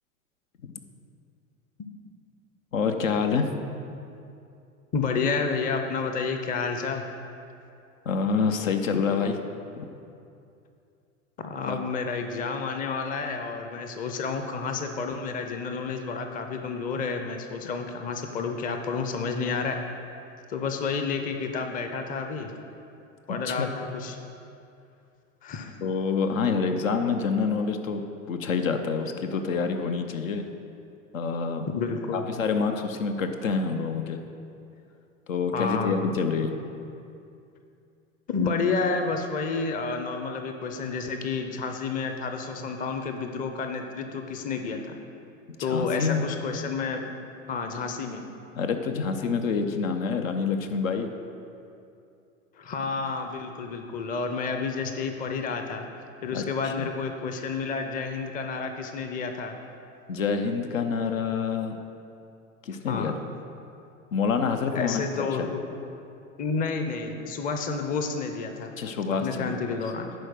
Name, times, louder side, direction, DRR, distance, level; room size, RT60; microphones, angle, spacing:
voice 1, 2.7-3.5 8.1-9.4 9.8-9.9 11.7-11.8 23.3-23.7 25.8-30.5 31.1-31.7 32.1-34.2 35.3-36.6 45.6-46.3 48.6-51.1 56.3-56.9 60.1-61.8 62.6-63.1 64.1-65.1 65.4-65.5 68.8-69.8, left 5 dB, 70° left, 6 dB, 0.8 m, -27 dB
voice 2, 4.9-7.0 11.4-19.8 20.5-22.5 23.3-24.2 25.4-25.7 31.7-32.2 35.5-36.0 38.3-45.0 45.6-47.0 47.5-48.2 52.6-55.9 56.2-59.5 62.9-63.2 64.7-65.6 66.4-68.7 69.2-70.1, left 4 dB, 20° left, 5 dB, 0.7 m, -30 dB
10.5 x 4.7 x 6.4 m, 2.6 s
figure-of-eight pair, 85°, 42 cm